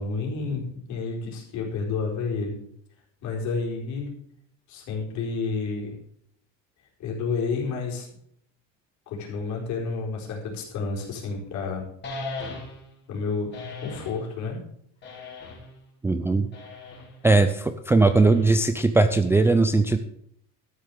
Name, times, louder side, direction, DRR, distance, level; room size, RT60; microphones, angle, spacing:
voice 1, 0.0-2.6 3.2-4.1 4.7-6.0 7.0-8.1 9.1-11.9 13.1-14.6, left 4 dB, 60° left, -1 dB, 4.2 m, -30 dB
sound 1, 12.0-12.9 13.5-14.2 15.0-15.8 16.5-17.1 18.0-18.7, left 3 dB, 35° left, 3.7 m, -38 dB
voice 2, 16.0-16.5 17.2-20.0, right 3 dB, 10° right, 7 dB, 0.3 m, -19 dB
13.0 x 6.7 x 6.8 m, 0.67 s
cardioid pair, 165°, 33 cm